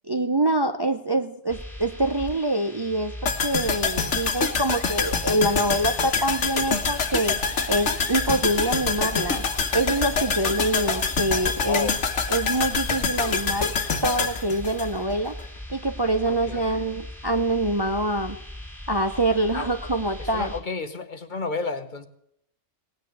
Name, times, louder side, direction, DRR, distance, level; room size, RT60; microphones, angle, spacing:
voice 1, 0.1-7.4 7.7-9.4 9.7-11.9 12.3-13.7 14.0-15.4 15.7-18.4 18.9-20.5, right 1 dB, 25° right, 7 dB, 0.7 m, -25 dB
sound 1, 1.5-20.6, left 1 dB, ahead, 2.6 m, -39 dB
sound 2, 3.3-15.4 15.7-15.8, left 5 dB, 85° left, 1.5 m, -26 dB
voice 2, 11.6-12.0 16.2-16.8 19.5-19.7 20.2-22.1, left 3 dB, 45° left, 9 dB, 1.2 m, -31 dB
18.0 x 9.7 x 7.9 m, 0.72 s
omnidirectional pair, 1.2 m